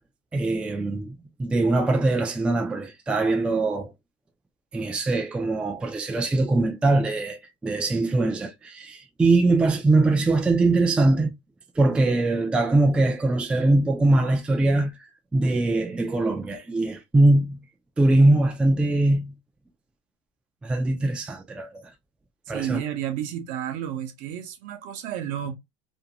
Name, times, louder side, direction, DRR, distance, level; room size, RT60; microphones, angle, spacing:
voice 1, 0.3-3.9 4.7-11.3 11.8-14.9 15.3-17.6 18.0-19.3 20.6-21.9 22.5-22.8, right 2 dB, 5° right, 0.3 m, -22 dB
voice 2, 22.5-25.5, right 10 dB, 55° right, 0.7 m, -31 dB
2.6 x 2.2 x 2.7 m
supercardioid pair, 135°, 16 cm